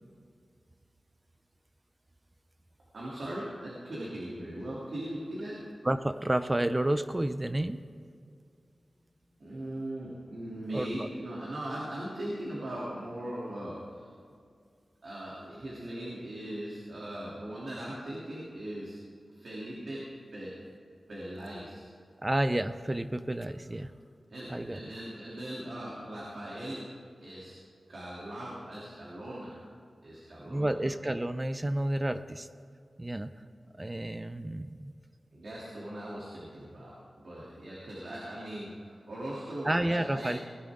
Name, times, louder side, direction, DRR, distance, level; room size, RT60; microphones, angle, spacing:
voice 1, 2.9-5.6 9.4-14.1 15.0-19.0 19.3-20.0 20.3-20.5 21.1-21.9 24.3-26.9 27.2-27.5 27.9-29.6 30.0-30.8 35.3-37.0 37.2-40.4, right 1 dB, 75° right, -7 dB, 3.0 m, -39 dB
voice 2, 5.8-7.8 10.7-11.1 22.2-23.9 24.5-24.8 30.4-32.5 33.0-33.3 33.7-34.9 39.6-40.4, right 1 dB, 20° right, 11 dB, 0.5 m, -30 dB
19.5 x 11.5 x 3.7 m, 2.3 s
wide cardioid pair, 100°, 0 cm